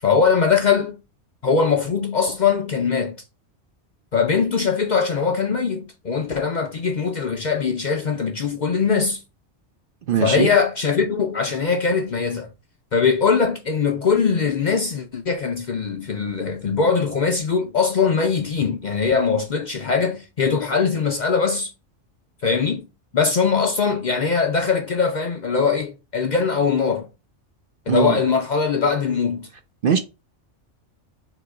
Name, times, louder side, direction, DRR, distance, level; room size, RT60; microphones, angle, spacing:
voice 1, 0.0-1.0 1.4-3.1 4.1-9.2 10.2-12.5 12.9-21.7 22.4-22.9 23.1-27.1 27.9-29.5, left 5 dB, 50° left, 0.6 m, -21 dB
voice 2, 10.1-10.5 27.9-28.2 29.8-30.0, right 7 dB, 55° right, 0.7 m, -20 dB
3.7 x 2.9 x 4.6 m
omnidirectional pair, 1.2 m